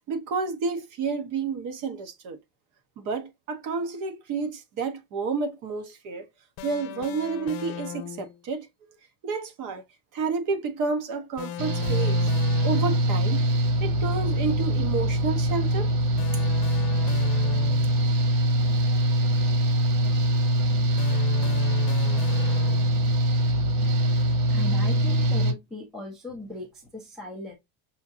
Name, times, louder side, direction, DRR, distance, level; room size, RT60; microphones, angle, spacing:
voice 1, 0.1-2.4 3.0-6.2 6.6-8.7 9.2-9.8 10.1-12.3 12.6-13.5 13.8-15.9, right 4 dB, 45° right, 1.0 m, -30 dB
sound 1, 6.6-8.4 11.4-13.2 16.2-18.1 21.0-23.2, left 12 dB, 70° left, 0.8 m, -37 dB
Engine / Mechanical fan, 11.6-25.5, right 1 dB, 85° right, 2.3 m, -23 dB
voice 2, 24.5-27.5, left 1 dB, ahead, 0.4 m, -38 dB
5.5 x 2.7 x 2.5 m
cardioid pair, 175°, 44 cm